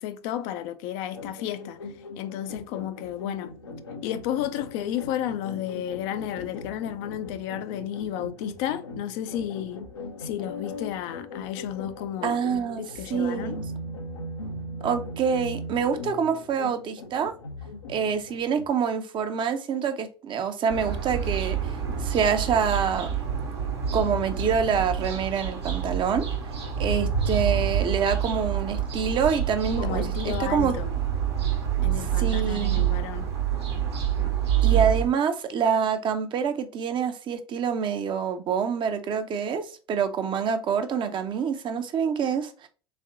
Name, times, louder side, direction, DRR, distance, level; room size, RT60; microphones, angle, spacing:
voice 1, 0.0-1.8 2.2-3.5 4.0-9.9 10.2-13.6 29.8-30.9 31.8-33.3, left 11 dB, 55° left, 0.4 m, -32 dB
sound 1, 1.1-18.7, left 2 dB, 85° left, 0.7 m, -39 dB
voice 2, 12.2-12.8 13.1-13.6 14.8-17.3 17.9-21.6 22.0-23.2 23.9-26.2 26.8-30.8 32.2-32.8 34.6-42.7, right 7 dB, 35° right, 0.6 m, -26 dB
sound 2, 20.7-35.1, right 9 dB, 80° right, 1.1 m, -27 dB
3.5 x 3.2 x 2.5 m
figure-of-eight pair, 75°, 14 cm